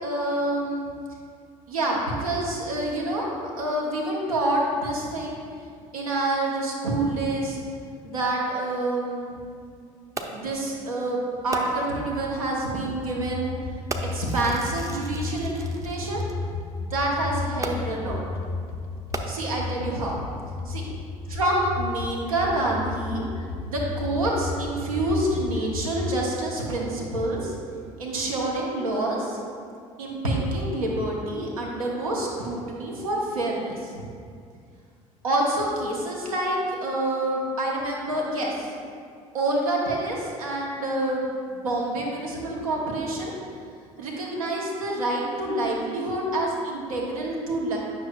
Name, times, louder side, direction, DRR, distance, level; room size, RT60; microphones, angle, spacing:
voice 1, 0.0-0.9 1.7-3.3 3.6-5.4 5.9-7.6 8.0-9.3 10.2-13.5 14.1-16.2 16.8-18.2 19.2-20.2 20.6-20.8 21.3-23.2 23.6-27.5 28.0-29.4 30.0-34.1 35.2-38.7 39.3-41.2 41.5-43.3 44.0-47.8, right 1 dB, 80° right, -3 dB, 1.1 m, -27 dB
Fireworks, 10.2-10.6 11.5-12.0 12.9-13.1 13.9-16.3 17.6-18.1 19.0-19.8 20.5-20.6, right 2 dB, 20° right, 0.6 m, -36 dB
sound 1, 13.1-26.2, left 3 dB, 85° left, 0.7 m, -33 dB
9.8 x 6.0 x 2.4 m, 2.2 s
figure-of-eight pair, 60°, 18 cm